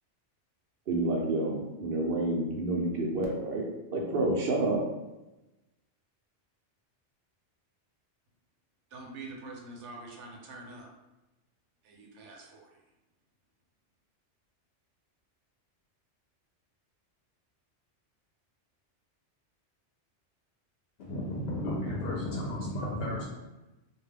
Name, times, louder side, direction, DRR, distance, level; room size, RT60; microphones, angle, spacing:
voice 1, 0.9-4.8, right 2 dB, 60° right, -1 dB, 0.7 m, -29 dB
voice 2, 8.9-10.9 11.8-12.7, right 2 dB, 85° right, 0 dB, 0.9 m, -45 dB
voice 3, 21.0-23.2, left 1 dB, 65° left, -3 dB, 0.8 m, -33 dB
2.3 x 2.2 x 3.2 m, 1.0 s
omnidirectional pair, 1.2 m